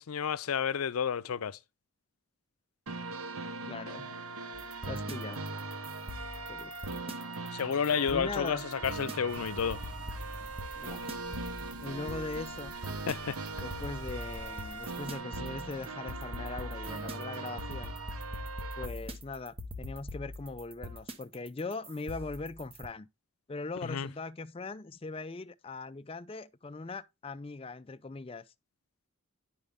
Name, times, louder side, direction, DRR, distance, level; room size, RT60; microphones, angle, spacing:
voice 1, 0.0-1.6 7.5-9.8 13.1-13.4 23.8-24.1, left 7 dB, 85° left, 0.5 m, -31 dB
sound 1, 2.9-18.9, right 3 dB, 90° right, 1.0 m, -40 dB
voice 2, 3.7-4.1 4.8-5.4 6.5-7.1 8.1-8.7 10.8-11.1 11.8-12.7 13.6-18.0 18.8-23.1 23.5-28.5, left 3 dB, 25° left, 0.4 m, -40 dB
sound 2, 4.5-22.9, left 1 dB, 25° right, 0.9 m, -43 dB
sound 3, 9.3-15.2, equal, 50° right, 2.3 m, -52 dB
9.9 x 5.4 x 3.5 m
head